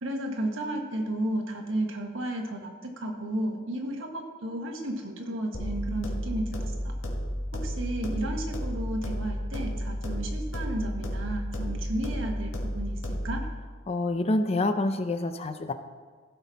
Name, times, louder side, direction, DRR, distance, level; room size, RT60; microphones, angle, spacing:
voice 1, 0.0-2.7 3.0-6.9 7.5-13.0 13.2-13.4, right 1 dB, 70° right, 2 dB, 1.4 m, -33 dB
sound 1, 5.5-13.5, equal, 90° left, 1.8 m, -32 dB
voice 2, 13.9-15.7, left 2 dB, 30° left, 9 dB, 0.5 m, -27 dB
15.5 x 5.8 x 4.1 m, 1.5 s
head